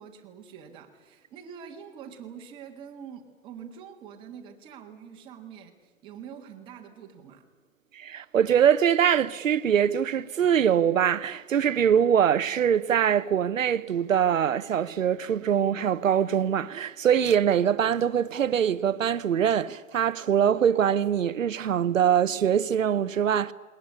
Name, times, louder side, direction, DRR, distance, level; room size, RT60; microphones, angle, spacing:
voice 1, 0.0-7.5, right 7 dB, 10° right, 1.7 m, -45 dB
voice 2, 7.9-23.5, right 8 dB, 65° right, 1.1 m, -23 dB
20.5 x 20.5 x 9.8 m
hypercardioid pair, 160°, 42 cm